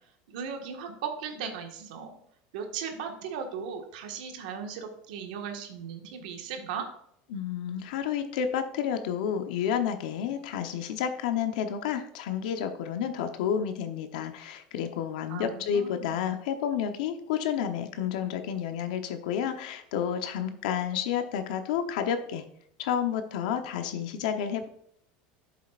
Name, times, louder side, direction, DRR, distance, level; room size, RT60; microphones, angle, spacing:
voice 1, 0.3-2.2 2.5-6.9 15.3-16.1, right 6 dB, 85° right, 4 dB, 1.7 m, -37 dB
voice 2, 7.3-22.4 22.8-24.7, left 8 dB, 80° left, 7 dB, 0.9 m, -30 dB
9.8 x 7.3 x 2.5 m, 0.70 s
supercardioid pair, 160°, 4 cm